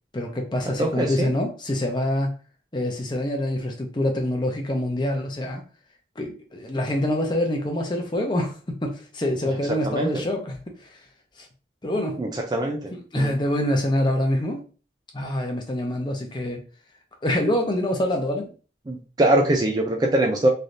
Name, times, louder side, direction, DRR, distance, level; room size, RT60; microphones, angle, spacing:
voice 1, 0.1-2.3 2.7-5.6 6.2-11.0 11.4-11.5 11.8-12.2 13.1-14.6 15.1-16.6 17.2-18.5, left 1 dB, 25° left, 2 dB, 0.6 m, -25 dB
voice 2, 0.8-1.3 9.8-10.2 12.2-13.3 18.9-20.5, right 1 dB, 20° right, 2 dB, 0.3 m, -23 dB
3.2 x 2.6 x 2.6 m, 0.36 s
head